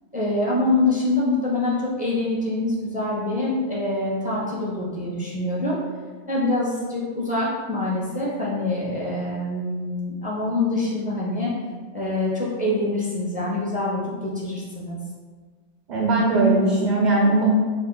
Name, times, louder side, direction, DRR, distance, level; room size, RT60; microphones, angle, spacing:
voice 1, 0.1-5.8 6.3-11.5 11.9-15.0, left 2 dB, 15° right, -5 dB, 0.3 m, -25 dB
voice 2, 15.9-17.4, right 2 dB, 45° right, -5 dB, 0.7 m, -19 dB
5.3 x 2.2 x 2.2 m, 1.5 s
omnidirectional pair, 1.1 m